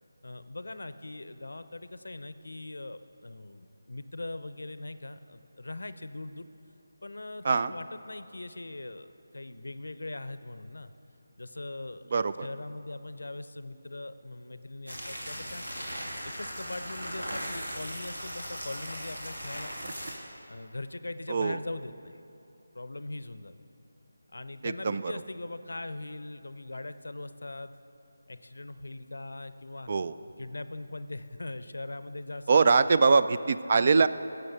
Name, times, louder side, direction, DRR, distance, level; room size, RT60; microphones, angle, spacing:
voice 1, 0.2-6.5 7.0-10.9 11.4-15.6 16.2-19.9 20.5-22.1 22.7-23.6 24.3-27.7 28.3-29.9 30.4-33.0, left 2 dB, 65° left, 12 dB, 0.6 m, -41 dB
voice 2, 12.1-12.5 21.3-21.6 24.6-25.1 29.9-30.1 32.5-34.1, right 4 dB, 40° right, 13 dB, 0.3 m, -23 dB
sound 1, 14.9-20.1, equal, 80° right, 2.4 m, -38 dB
17.0 x 6.4 x 6.0 m, 2.7 s
figure-of-eight pair, 160°, 0 cm